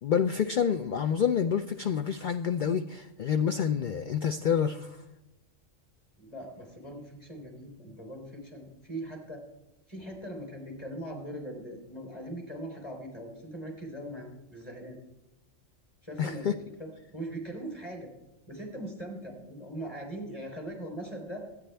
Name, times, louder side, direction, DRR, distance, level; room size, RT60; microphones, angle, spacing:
voice 1, 0.0-5.0 16.2-16.6, left 7 dB, 60° left, 9 dB, 0.5 m, -28 dB
voice 2, 6.2-9.4 9.9-15.0 16.0-16.5 16.8-18.1 18.5-21.4, right 1 dB, 20° left, 1 dB, 3.5 m, -40 dB
23.0 x 9.5 x 3.4 m, 0.96 s
omnidirectional pair, 1.3 m